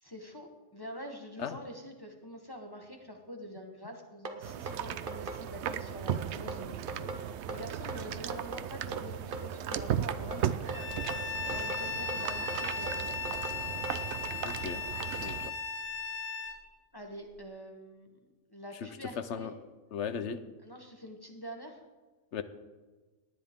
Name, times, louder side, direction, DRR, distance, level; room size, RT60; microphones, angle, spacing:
voice 1, 0.0-13.4 16.9-18.1 18.5-19.5 20.6-21.8, equal, 20° left, 2 dB, 1.2 m, -46 dB
sound 1, 4.2-14.0, right 3 dB, 45° right, 1.1 m, -40 dB
sound 2, 4.4-15.5, right 10 dB, 65° right, 0.8 m, -37 dB
Bowed string instrument, 10.7-16.6, left 5 dB, 90° left, 2.1 m, -37 dB
voice 2, 14.4-14.8 15.1-15.5 19.3-19.5 19.9-20.4 22.3-22.4, left 7 dB, 65° left, 11 dB, 1.0 m, -36 dB
18.0 x 10.0 x 3.7 m, 1.3 s
omnidirectional pair, 1.4 m